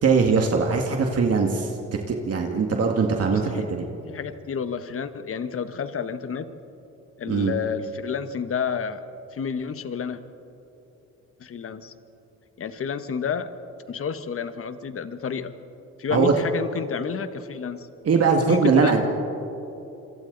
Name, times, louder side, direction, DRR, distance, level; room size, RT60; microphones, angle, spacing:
voice 1, 0.0-3.9 7.3-7.5 16.1-16.3 18.0-19.0, right 5 dB, 55° right, 2 dB, 2.0 m, -21 dB
voice 2, 3.3-3.7 4.1-6.5 7.2-9.0 9.3-10.2 11.4-11.9 12.6-13.5 13.9-15.5 16.0-17.9 18.5-19.0, left 6 dB, 45° left, 11 dB, 1.2 m, -30 dB
27.5 x 23.5 x 4.0 m, 3.0 s
cardioid pair, 90°, 30 cm